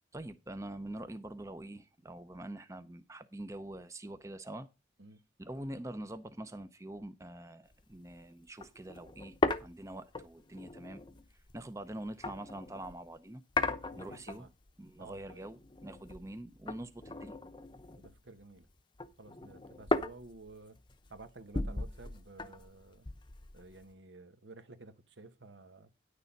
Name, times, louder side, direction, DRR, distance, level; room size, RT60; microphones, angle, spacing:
voice 1, 0.1-4.7 5.4-11.0 11.5-13.4 14.0-14.5 14.8-17.4, right 1 dB, 15° right, 0.6 m, -45 dB
sound 1, 7.7-7.9 8.2-8.3 8.6-13.0 13.5-14.7 15.0-16.4 16.7-18.4 18.7-23.9, left 2 dB, 25° left, 0.8 m, -37 dB
voice 2, 13.9-14.5 15.0-15.5 18.0-18.7 19.2-20.8 21.1-23.1 23.5-25.9, right 3 dB, 80° right, 1.3 m, -53 dB
10.0 x 6.7 x 5.2 m
head